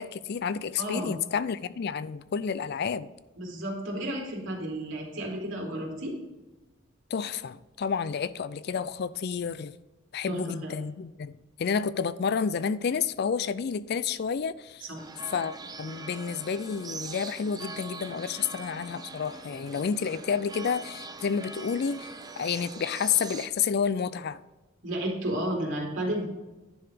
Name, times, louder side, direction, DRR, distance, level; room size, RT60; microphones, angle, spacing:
voice 1, 0.0-3.1 7.1-9.8 10.1-14.8 15.3-24.4, left 6 dB, 50° left, 0.4 m, -30 dB
voice 2, 0.8-1.2 3.4-6.1 10.2-10.7 14.8-15.0 24.8-26.2, right 1 dB, 65° right, 3.0 m, -32 dB
sound 1, 14.9-23.5, right 3 dB, 20° right, 0.6 m, -42 dB
11.0 x 4.8 x 5.2 m
head